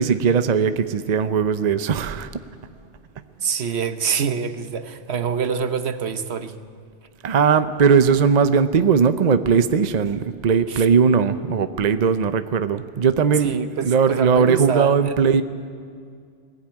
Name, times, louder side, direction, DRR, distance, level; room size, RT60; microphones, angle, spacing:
voice 1, 0.0-2.3 7.2-15.4, right 6 dB, 45° right, 11 dB, 0.7 m, -19 dB
voice 2, 3.4-6.5 10.7-10.9 13.4-15.1, right 6 dB, 65° right, 10 dB, 1.2 m, -26 dB
20.5 x 16.0 x 9.0 m, 2.2 s
omnidirectional pair, 1.2 m